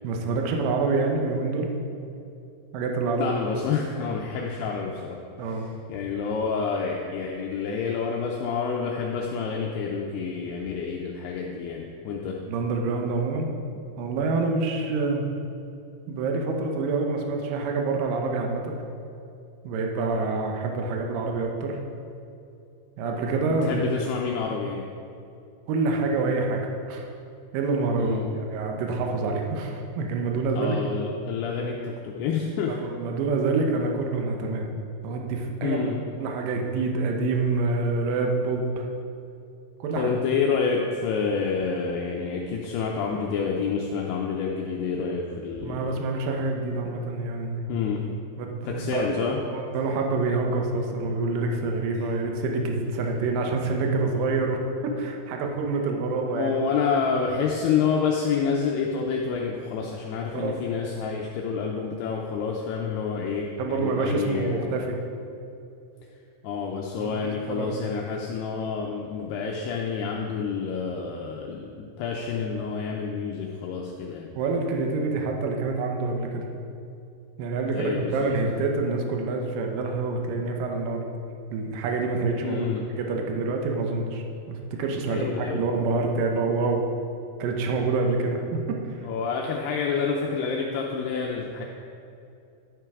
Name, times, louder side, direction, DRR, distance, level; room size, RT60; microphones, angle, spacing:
voice 1, 0.0-1.7 2.7-3.3 5.4-5.7 12.5-13.5 14.0-15.3 16.1-18.8 19.6-21.8 23.0-23.8 25.7-26.6 26.9-27.1 27.5-30.8 32.7-35.8 36.2-38.9 39.8-40.1 45.6-47.7 48.4-54.6 55.0-56.6 60.3-60.5 63.6-65.0 67.0-67.8 74.4-76.5 77.4-81.1 81.5-82.7 83.0-86.9 87.4-88.9, right 3 dB, 85° right, 2 dB, 1.9 m, -27 dB
voice 2, 3.2-12.4 23.6-24.9 28.0-28.3 30.6-32.8 35.6-36.0 40.0-45.8 47.7-48.1 48.6-49.4 52.0-52.1 56.3-64.8 66.4-74.3 77.7-78.3 82.4-82.9 85.0-85.6 89.0-91.6, left 5 dB, 80° left, -1 dB, 2.3 m, -28 dB
11.5 x 8.9 x 3.6 m, 2.6 s
omnidirectional pair, 5.3 m